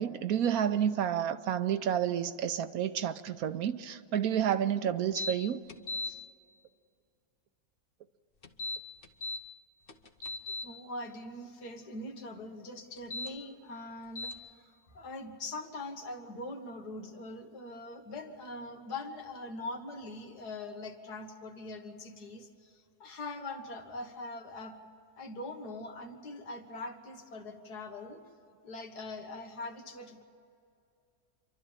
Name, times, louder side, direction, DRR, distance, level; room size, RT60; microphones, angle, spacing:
voice 1, 0.0-5.6, right 9 dB, 70° right, 11 dB, 1.2 m, -30 dB
sound 1, 5.2-5.3 5.7-6.1 8.4-9.4 9.9-10.6 13.0-13.3 14.2-14.3, left 2 dB, 40° left, 1.1 m, -36 dB
voice 2, 10.6-24.8 25.2-28.2 28.6-30.2, left 2 dB, 90° left, 4 dB, 2.2 m, -42 dB
27.0 x 12.0 x 8.9 m, 2.4 s
omnidirectional pair, 1.7 m